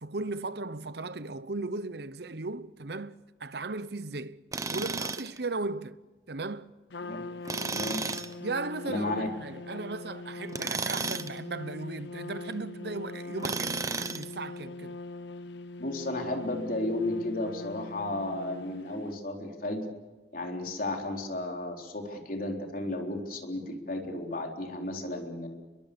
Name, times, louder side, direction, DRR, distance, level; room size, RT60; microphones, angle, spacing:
voice 1, 0.0-4.4 4.7-6.0 6.3-6.7 8.4-15.0, right 3 dB, 65° right, 0.9 m, -36 dB
Tools, 4.5-5.4 7.5-8.3 10.5-11.4 13.4-14.3, right 4 dB, 20° right, 0.9 m, -33 dB
Trumpet, 6.9-19.0, left 2 dB, 80° left, 0.9 m, -42 dB
voice 2, 7.7-8.2 8.8-9.3 15.8-19.9 20.3-25.5, left 1 dB, 55° left, 3.9 m, -33 dB
29.5 x 22.5 x 7.0 m
head